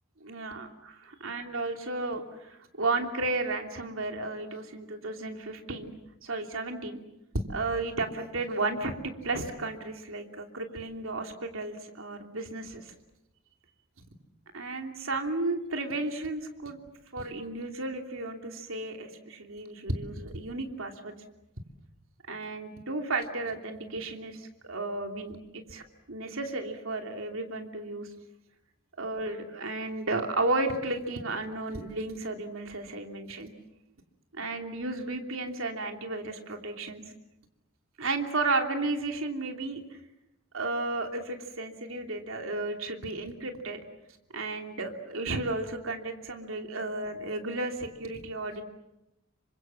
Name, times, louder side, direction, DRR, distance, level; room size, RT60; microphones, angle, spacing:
voice 1, 0.2-0.7 1.2-5.9 6.2-7.0 7.5-12.9 14.5-16.8 17.1-21.1 22.3-25.8 26.1-28.1 29.0-33.5 34.3-37.0 38.0-39.8 40.5-43.8 44.3-48.6, right 2 dB, 80° right, 4 dB, 3.1 m, -33 dB
28.0 x 25.0 x 7.5 m, 0.89 s
head